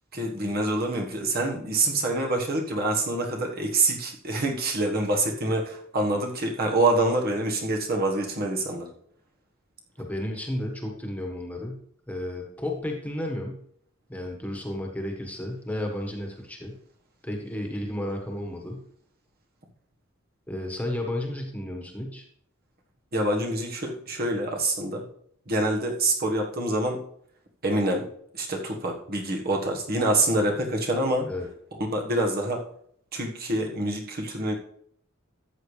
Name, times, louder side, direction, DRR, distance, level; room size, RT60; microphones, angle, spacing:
voice 1, 0.1-8.9 23.1-25.1 25.5-27.0 27.6-28.1 28.3-31.3 31.8-32.6 33.1-34.5, right 2 dB, 45° right, 0 dB, 1.5 m, -26 dB
voice 2, 10.0-11.8 12.1-13.6 14.1-16.7 17.2-18.8 20.5-22.2 31.3-31.5, left 1 dB, 5° left, 1 dB, 1.5 m, -32 dB
13.5 x 8.1 x 3.3 m, 0.66 s
head